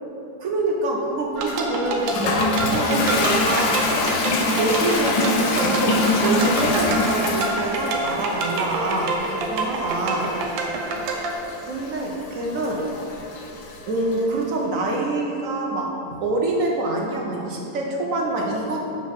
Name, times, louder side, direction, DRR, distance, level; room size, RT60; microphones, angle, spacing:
voice 1, 0.4-3.8 4.5-10.3 11.6-12.8 13.9-18.9, right 2 dB, 60° right, -1 dB, 0.9 m, -26 dB
sound 1, 1.4-11.3, right 3 dB, 85° right, 1.5 m, -27 dB
Toilet flush, 1.5-14.2, left 2 dB, 70° left, 1.2 m, -25 dB
7.4 x 3.7 x 5.1 m, 2.9 s
omnidirectional pair, 2.0 m